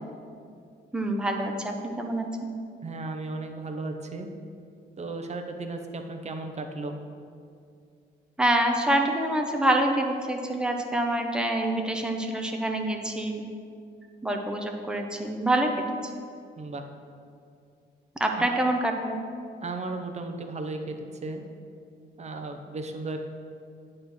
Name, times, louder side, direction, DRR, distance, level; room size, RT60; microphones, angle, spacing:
voice 1, 0.9-2.5 8.4-13.4 14.2-15.7 16.0-16.1 18.2-19.2, right 1 dB, 5° right, 2 dB, 0.8 m, -26 dB
voice 2, 2.8-4.3 5.0-7.0 16.6-16.9 18.3-18.5 19.6-21.5 22.2-23.2, right 3 dB, 35° right, 5 dB, 0.8 m, -35 dB
9.4 x 3.3 x 6.2 m, 2.4 s
cardioid pair, 90°, 20 cm